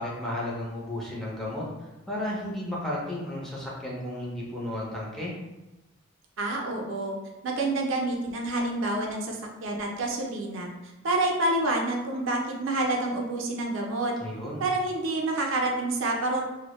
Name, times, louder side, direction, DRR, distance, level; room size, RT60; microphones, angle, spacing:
voice 1, 0.0-5.3 14.2-14.6, left 1 dB, ahead, -5 dB, 0.4 m, -33 dB
voice 2, 6.4-7.2 7.4-10.7 11.0-14.1 14.6-16.4, right 2 dB, 70° right, 1 dB, 0.4 m, -28 dB
2.1 x 2.0 x 2.9 m, 1.1 s
head